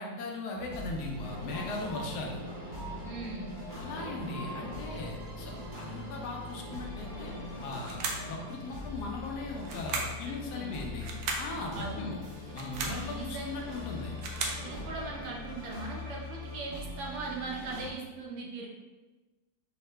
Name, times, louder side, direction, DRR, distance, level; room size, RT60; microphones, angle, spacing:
voice 1, 0.0-2.4 3.7-7.3 7.6-11.1 11.4-12.2 12.5-14.1, left 3 dB, 75° left, 0 dB, 1.2 m, -38 dB
sound 1, 0.5-17.9, left 2 dB, 50° right, 0.6 m, -43 dB
sound 2, 1.2-15.4, equal, 40° left, 0.8 m, -46 dB
voice 2, 3.0-3.5 10.2-10.8 11.7-12.2 12.8-13.5 14.6-18.7, right 3 dB, 70° right, -2 dB, 1.2 m, -39 dB
sound 3, 7.8-8.3 9.6-10.2 11.0-11.5 12.5-13.0 13.9-14.6, right 4 dB, 85° right, 1.2 m, -35 dB
5.7 x 2.1 x 3.2 m, 1.2 s
omnidirectional pair, 1.9 m